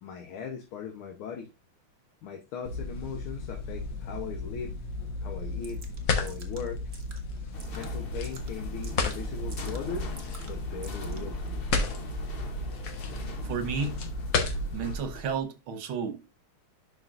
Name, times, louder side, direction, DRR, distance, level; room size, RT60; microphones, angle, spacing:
voice 1, 0.0-1.5 2.2-4.7 5.2-5.8 6.1-6.8 7.7-10.2 10.5-11.7, left 6 dB, 85° left, 1.9 m, -39 dB
sound 1, 2.6-14.9, left 3 dB, 65° left, 1.8 m, -33 dB
sound 2, 5.6-11.5, right 3 dB, 35° right, 1.5 m, -51 dB
sound 3, 7.5-15.4, right 1 dB, 40° left, 0.8 m, -40 dB
voice 2, 13.4-14.0 14.7-16.3, right 5 dB, 80° right, 1.9 m, -32 dB
11.0 x 5.0 x 2.5 m
omnidirectional pair, 2.2 m